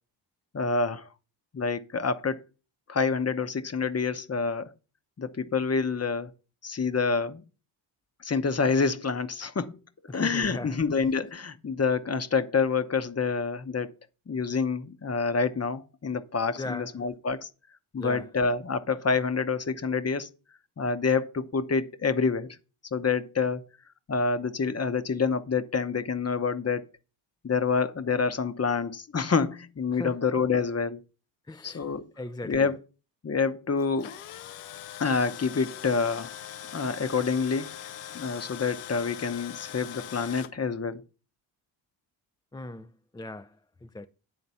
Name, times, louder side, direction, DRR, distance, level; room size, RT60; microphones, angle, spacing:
voice 1, 0.5-1.1 1.5-2.4 2.9-4.7 5.2-6.3 6.6-7.4 8.2-9.8 10.1-13.9 14.3-17.5 17.9-20.3 20.8-22.5 22.9-23.6 24.1-26.8 27.4-31.0 31.6-32.0 32.4-32.8 33.2-34.2 35.0-36.3 36.7-37.8 38.1-41.0, left 5 dB, 30° left, 0.9 m, -27 dB
voice 2, 10.1-10.8 16.6-16.9 18.0-18.3 29.9-30.2 31.5-31.9 32.2-32.7 42.5-44.1, left 2 dB, 10° left, 0.4 m, -38 dB
Tools, 33.8-40.5, left 11 dB, 90° left, 0.7 m, -42 dB
9.5 x 3.9 x 5.6 m
cardioid pair, 60°, 50 cm